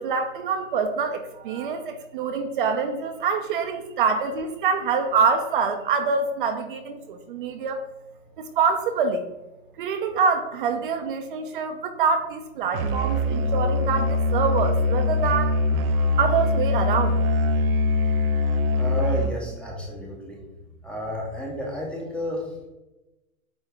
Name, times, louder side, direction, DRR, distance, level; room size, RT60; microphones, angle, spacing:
voice 1, 0.0-7.8 8.6-9.2 9.8-15.6 16.2-17.2, right 5 dB, 40° right, 6 dB, 0.5 m, -25 dB
Musical instrument, 12.7-19.5, left 2 dB, 85° right, 0.7 m, -23 dB
voice 2, 18.7-20.4 20.8-22.7, equal, 5° left, -2 dB, 0.6 m, -32 dB
8.4 x 3.4 x 3.3 m, 1.0 s
hypercardioid pair, 150°, 41 cm